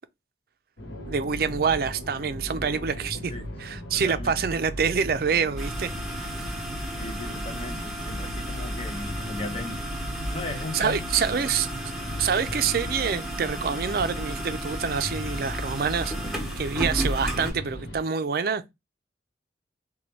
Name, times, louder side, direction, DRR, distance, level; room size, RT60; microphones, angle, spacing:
sound 1, 0.8-18.0, equal, 85° left, 0.9 m, -36 dB
voice 1, 1.1-3.3 3.6-6.5 10.7-11.7 12.2-18.7, right 6 dB, 55° right, 0.4 m, -27 dB
voice 2, 3.1-3.5 3.9-4.4 7.0-9.8 10.3-11.4, left 2 dB, 30° left, 0.6 m, -37 dB
sound 2, 5.6-17.5, right 1 dB, ahead, 0.9 m, -34 dB
3.0 x 2.2 x 4.2 m
head